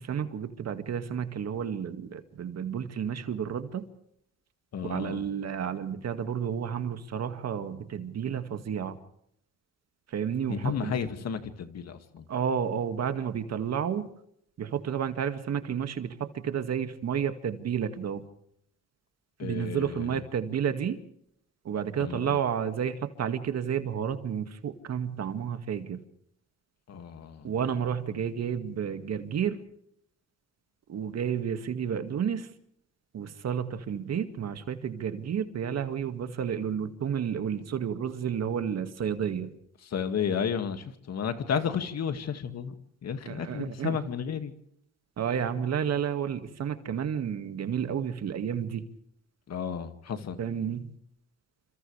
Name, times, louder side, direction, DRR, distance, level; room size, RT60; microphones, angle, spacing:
voice 1, 0.0-3.9 4.8-9.0 10.1-11.0 12.3-14.1 14.6-18.2 19.4-21.0 21.6-26.0 27.4-29.6 30.9-32.5 33.1-39.5 43.3-44.0 45.2-48.8 50.4-50.9, right 8 dB, 60° right, 8 dB, 2.1 m, -31 dB
voice 2, 4.7-5.2 10.5-12.3 19.4-20.2 22.0-22.4 26.9-27.5 39.8-42.8 43.0-44.5 49.5-50.4, left 7 dB, 60° left, 8 dB, 2.2 m, -32 dB
29.0 x 26.5 x 3.4 m, 0.72 s
cardioid pair, 90°, 30 cm